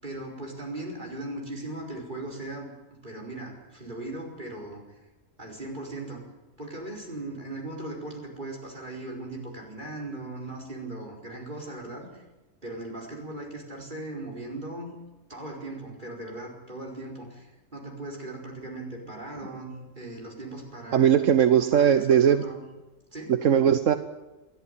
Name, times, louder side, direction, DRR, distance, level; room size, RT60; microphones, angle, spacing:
voice 1, 0.0-5.0 5.4-6.2 6.6-12.2 12.6-14.9 15.3-21.1 21.6-22.6 23.1-23.4, right 2 dB, 40° right, -1 dB, 5.2 m, -38 dB
voice 2, 20.9-22.4 23.3-23.9, right 9 dB, 80° right, 10 dB, 1.3 m, -19 dB
28.0 x 11.5 x 9.3 m, 1.1 s
omnidirectional pair, 1.3 m